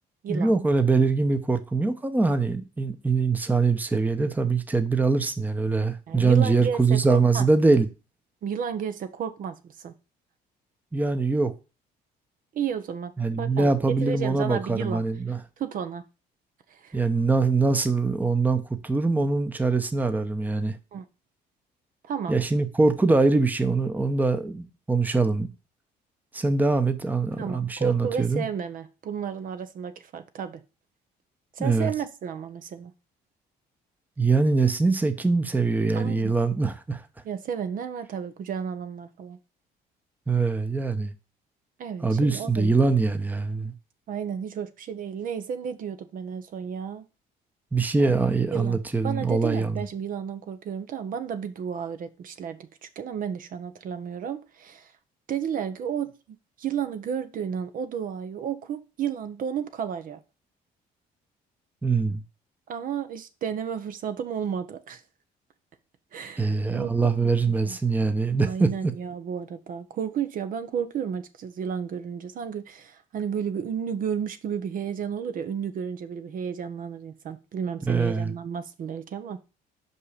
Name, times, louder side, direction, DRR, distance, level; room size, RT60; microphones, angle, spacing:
voice 1, 0.3-7.9 10.9-11.5 13.2-15.4 16.9-20.8 22.3-25.5 26.3-28.5 31.6-31.9 34.2-37.1 40.3-41.1 42.0-43.7 47.7-49.9 61.8-62.2 66.4-68.9 77.9-78.3, right 3 dB, 10° right, 0.8 m, -23 dB
voice 2, 6.1-7.4 8.4-9.9 12.5-13.1 13.4-13.7 14.0-15.0 15.6-16.0 16.7-17.0 20.9-21.1 22.0-22.3 27.4-30.6 31.5-32.9 35.9-36.3 37.2-39.4 41.8-42.8 44.1-47.1 48.0-48.1 48.5-54.9 55.3-56.1 56.6-60.2 62.7-65.0 66.1-67.8 68.4-79.4, right 7 dB, 55° right, 0.9 m, -32 dB
5.5 x 5.4 x 4.9 m
cardioid pair, 110°, 17 cm